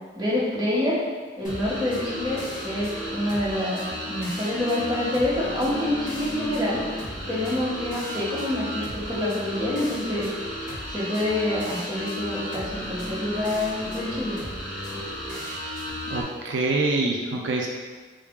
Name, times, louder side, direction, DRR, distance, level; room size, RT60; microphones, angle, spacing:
voice 1, 0.1-1.0 1.4-3.8 4.1-6.8 7.3-10.3 10.8-14.4, left 1 dB, 20° right, -8 dB, 0.9 m, -27 dB
sound 1, 1.4-16.2, equal, 40° left, 1.3 m, -33 dB
voice 2, 16.1-17.7, right 2 dB, 80° right, 0 dB, 0.4 m, -25 dB
3.8 x 2.4 x 3.5 m, 1.5 s
head